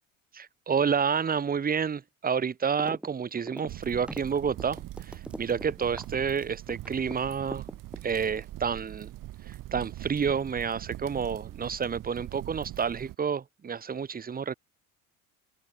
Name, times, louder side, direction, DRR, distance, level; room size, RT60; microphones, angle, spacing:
voice 1, 0.3-7.6 8.0-9.1 9.5-14.5, right 6 dB, 20° right, 1.4 m, -29 dB
sound 1, 2.8-3.1 3.3-7.2 7.5-8.4, right 1 dB, ahead, 1.5 m, -40 dB
sound 2, 3.7-13.2, right 15 dB, 45° right, 2.6 m, -42 dB
figure-of-eight pair, 65°, 44 cm